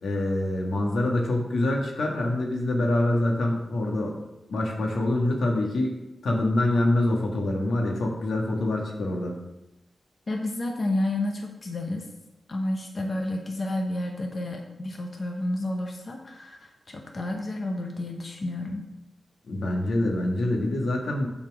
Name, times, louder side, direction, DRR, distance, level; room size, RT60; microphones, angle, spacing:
voice 1, 0.0-4.1 4.5-5.9 6.2-9.4 19.5-21.3, left 1 dB, 85° left, 0 dB, 1.5 m, -25 dB
voice 2, 10.3-12.1 12.5-18.8, left 1 dB, 40° left, 2 dB, 0.8 m, -30 dB
7.4 x 4.4 x 6.0 m, 0.96 s
wide cardioid pair, 110°, 0 cm